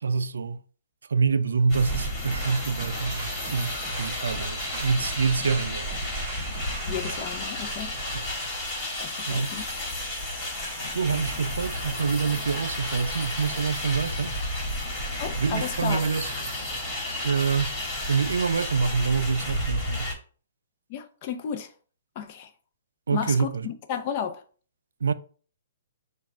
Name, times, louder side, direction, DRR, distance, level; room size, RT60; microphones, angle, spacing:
voice 1, 0.0-0.6 1.1-5.9 8.1-8.3 9.3-9.5 10.9-14.3 15.3-16.3 17.2-17.8 18.1-20.1 23.1-23.7 25.0-25.1, right 5 dB, 90° right, 0.3 m, -26 dB
sound 1, 1.7-20.1, left 1 dB, 20° left, 1.6 m, -32 dB
sound 2, 1.8-7.4, right 2 dB, 35° right, 1.6 m, -39 dB
voice 2, 6.9-8.0 9.0-9.6 15.2-16.0 20.9-21.7 22.2-22.5 23.1-24.4, left 8 dB, 40° left, 0.6 m, -33 dB
4.7 x 2.3 x 4.4 m
hypercardioid pair, 150°, 0 cm